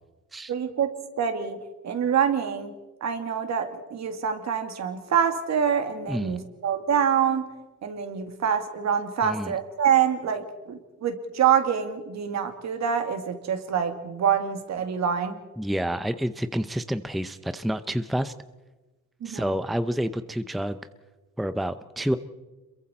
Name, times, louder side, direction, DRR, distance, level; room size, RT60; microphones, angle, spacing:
voice 1, 0.5-2.7 3.0-7.5 7.8-15.4 19.2-19.5, right 8 dB, 60° right, 7 dB, 2.3 m, -26 dB
voice 2, 6.1-6.4 9.2-9.5 15.6-18.3 19.2-20.8 21.4-22.2, equal, ahead, 12 dB, 0.7 m, -28 dB
27.0 x 22.5 x 4.3 m, 1.2 s
cardioid pair, 90°, 30 cm